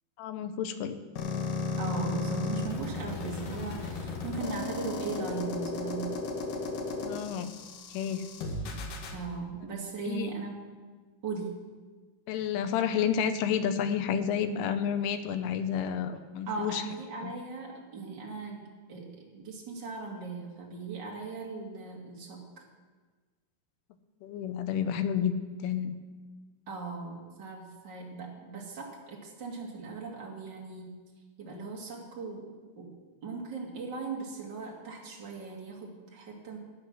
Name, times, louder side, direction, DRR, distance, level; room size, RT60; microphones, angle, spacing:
voice 1, 0.2-1.0 7.0-7.5 7.9-8.2 10.1-10.3 12.3-16.8 17.2-17.3 24.2-25.3 25.6-26.0, left 8 dB, 85° left, 9 dB, 3.2 m, -30 dB
sound 1, 1.2-9.2, left 3 dB, 65° left, 2.1 m, -34 dB
voice 2, 1.8-6.1 9.1-10.7 11.2-11.6 16.5-22.6 26.7-30.9 31.4-32.9 33.2-36.6, right 4 dB, 55° right, -2 dB, 1.2 m, -38 dB
14.5 x 9.2 x 6.2 m, 1.4 s
omnidirectional pair, 5.7 m